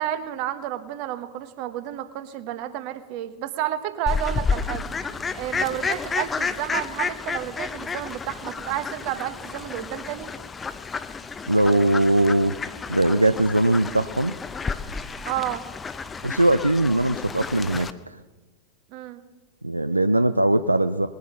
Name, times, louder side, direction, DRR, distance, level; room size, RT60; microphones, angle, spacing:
voice 1, 0.0-4.8 5.4-10.3 15.2-15.6 18.9-19.2, right 12 dB, 45° right, 11 dB, 1.0 m, -31 dB
Fowl, 4.1-17.9, left 5 dB, 15° left, 0.6 m, -31 dB
voice 2, 11.5-12.6 12.9-14.4 16.2-18.2 19.6-21.1, right 1 dB, 85° right, 12 dB, 0.4 m, -20 dB
20.0 x 8.2 x 5.8 m, 1.2 s
figure-of-eight pair, 90°, 0 cm